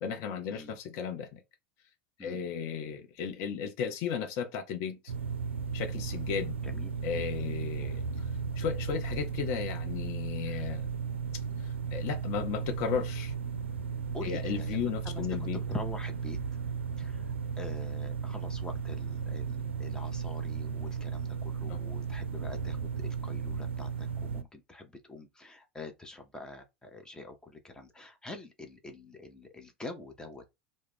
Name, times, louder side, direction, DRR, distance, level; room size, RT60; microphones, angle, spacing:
voice 1, 0.0-1.4 2.2-5.1 5.7-6.6 7.0-8.3 8.6-10.9 11.6-13.3 14.2-15.6 21.7-21.8, left 7 dB, 55° left, 0.6 m, -35 dB
sound 1, 5.1-24.4, right 6 dB, 90° right, 0.3 m, -35 dB
voice 2, 6.6-7.0 7.4-7.5 10.5-10.6 14.1-15.2 15.5-16.4 17.0-30.5, left 3 dB, 10° left, 0.6 m, -45 dB
2.3 x 2.1 x 3.4 m
hypercardioid pair, 85°, 6 cm